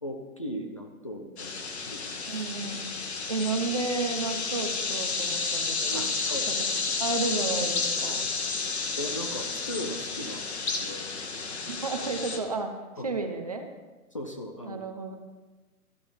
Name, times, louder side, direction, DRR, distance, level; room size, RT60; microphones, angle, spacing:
voice 1, 0.0-2.4 5.8-6.5 9.0-10.5 10.8-11.1 13.0-13.1 14.1-14.8, equal, 20° left, 3 dB, 0.7 m, -38 dB
sound 1, 1.4-12.4, left 4 dB, 45° left, 2.0 m, -31 dB
voice 2, 2.3-3.0 3.3-6.1 6.5-6.6 7.0-8.3 11.7-13.7 14.7-15.2, right 3 dB, 25° right, 5 dB, 0.8 m, -32 dB
13.5 x 8.2 x 7.2 m, 1.2 s
hypercardioid pair, 170°, 44 cm